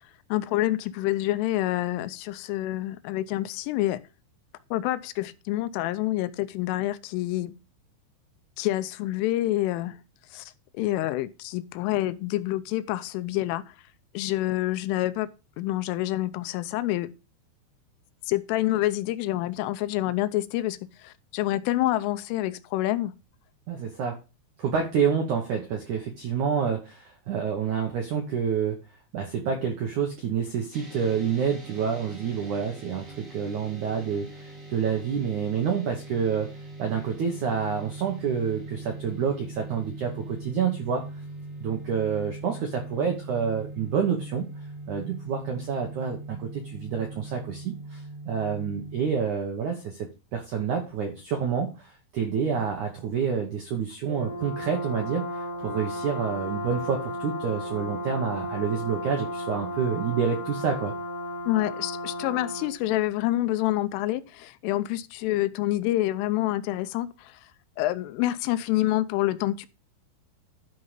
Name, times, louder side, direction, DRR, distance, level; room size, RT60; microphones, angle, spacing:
voice 1, 0.3-4.0 4.7-7.6 8.6-10.0 10.3-10.5 10.8-13.6 14.1-17.1 18.3-23.1 61.5-67.3 67.8-69.7, left 15 dB, 85° left, 3.2 m, -27 dB
voice 2, 23.7-24.2 24.6-28.8 29.1-36.5 36.8-41.0 41.6-44.5 44.9-55.3 55.6-60.9, right 7 dB, 75° right, 1.8 m, -28 dB
sound 1, 30.7-49.0, right 2 dB, 60° right, 0.8 m, -41 dB
Brass instrument, 54.0-62.8, left 1 dB, 50° left, 2.8 m, -34 dB
12.0 x 5.6 x 5.1 m
omnidirectional pair, 5.6 m